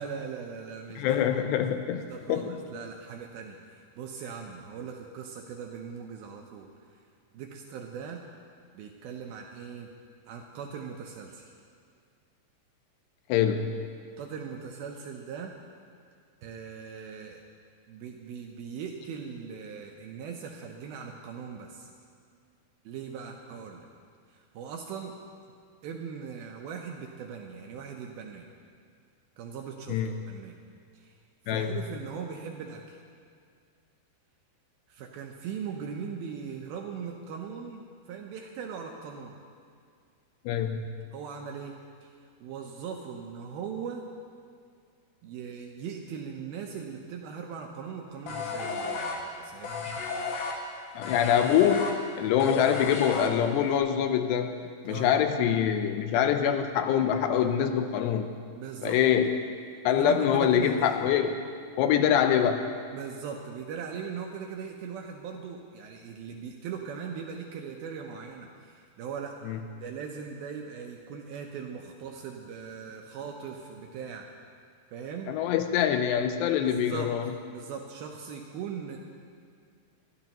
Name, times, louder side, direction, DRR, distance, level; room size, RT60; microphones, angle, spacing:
voice 1, 0.0-1.6 1.9-6.7 7.3-8.2 8.7-9.9 10.3-11.5 14.2-15.5 16.4-17.4 17.9-21.9 22.9-23.9 24.3-25.1 25.8-28.5 29.4-30.6 30.9-31.1 31.5-33.0 34.9-39.3 41.1-41.8 42.0-42.1 42.4-44.1 45.2-50.0 54.9-55.1 58.5-59.0 59.9-61.0 62.9-69.3 69.8-74.3 74.9-75.3 76.5-77.1 77.5-79.0, right 6 dB, 75° right, 1 dB, 2.3 m, -40 dB
voice 2, 1.0-2.0 2.3-2.5 13.3-13.7 29.9-30.1 31.5-31.8 40.5-40.9 51.0-54.6 54.8-58.3 58.8-59.3 59.9-61.4 61.8-62.7 69.5-69.6 75.3-77.3, left 9 dB, 80° left, 7 dB, 2.8 m, -25 dB
sound 1, 48.3-53.8, left 4 dB, 65° left, 2.7 m, -33 dB
23.5 x 12.5 x 3.0 m, 2.2 s
omnidirectional pair, 5.0 m